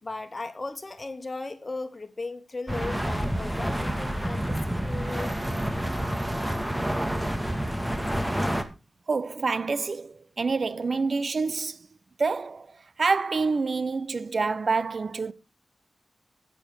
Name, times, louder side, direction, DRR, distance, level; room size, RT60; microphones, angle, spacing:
voice 1, 0.0-5.4, left 3 dB, 40° left, 2.0 m, -36 dB
sound 1, 2.7-8.6, equal, 10° right, 2.0 m, -28 dB
voice 2, 9.1-11.8 12.2-12.7 13.0-15.3, right 4 dB, 65° right, 0.7 m, -27 dB
10.5 x 9.8 x 4.6 m
cardioid pair, 50°, 0 cm